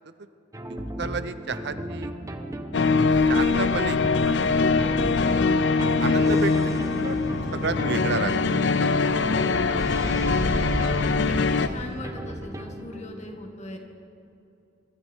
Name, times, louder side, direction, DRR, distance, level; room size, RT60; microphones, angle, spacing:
sound 1, 0.5-13.0, right 1 dB, 15° right, 1.0 m, -36 dB
voice 1, 0.7-2.1 3.3-4.0 4.2-4.6 5.2-5.4 6.0-7.2 7.5-8.5 9.3-9.8, right 4 dB, 65° right, 12 dB, 0.7 m, -31 dB
sound 2, 2.7-11.7, left 4 dB, 65° left, 0.5 m, -23 dB
sound 3, 2.9-11.9, equal, 85° left, 3.2 m, -34 dB
voice 2, 9.3-10.0 11.2-13.8, left 1 dB, 40° left, 3 dB, 1.8 m, -39 dB
24.0 x 13.0 x 4.5 m, 2.7 s
head